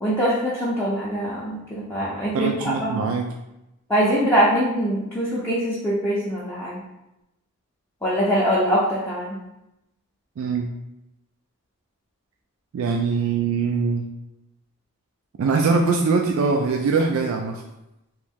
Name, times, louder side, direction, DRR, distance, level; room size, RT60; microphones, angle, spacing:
voice 1, 0.0-2.5 2.8-3.1 3.9-6.8 8.0-9.4, equal, 10° left, -8 dB, 0.5 m, -23 dB
voice 2, 2.3-3.2 10.4-10.7 12.7-14.1 15.4-17.6, right 4 dB, 65° right, 2 dB, 0.3 m, -22 dB
3.1 x 2.7 x 3.5 m, 0.91 s
head